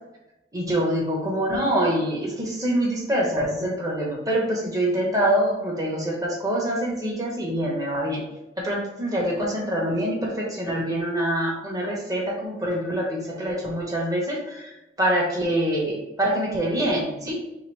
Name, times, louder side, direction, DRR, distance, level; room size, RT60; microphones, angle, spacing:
voice 1, 0.5-8.2 8.6-17.4, right 1 dB, 20° right, -2 dB, 1.1 m, -25 dB
3.4 x 2.9 x 4.5 m, 0.96 s
head